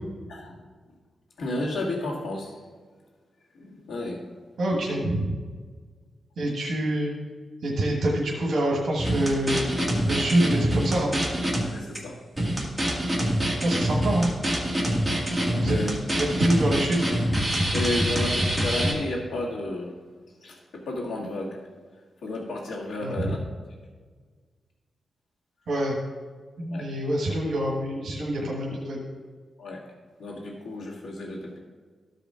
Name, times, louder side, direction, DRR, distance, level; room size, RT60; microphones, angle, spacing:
voice 1, 1.4-2.5 3.6-4.3 11.7-12.2 15.5-16.0 17.7-20.0 20.4-21.6 22.2-23.4 26.7-26.9 29.6-29.9 30.2-31.6, left 2 dB, 90° left, -7 dB, 1.8 m, -32 dB
voice 2, 4.6-5.4 6.4-7.1 7.6-9.7 10.0-11.1 13.6-14.3 15.6-17.0 23.0-23.4 25.7-26.0 26.6-29.0, right 1 dB, 65° right, -3 dB, 1.5 m, -26 dB
sound 1, 9.0-11.6 12.0-12.1 12.4-18.9, equal, 5° right, 1.7 m, -25 dB
14.5 x 5.0 x 3.7 m, 1.5 s
wide cardioid pair, 180°, 0 cm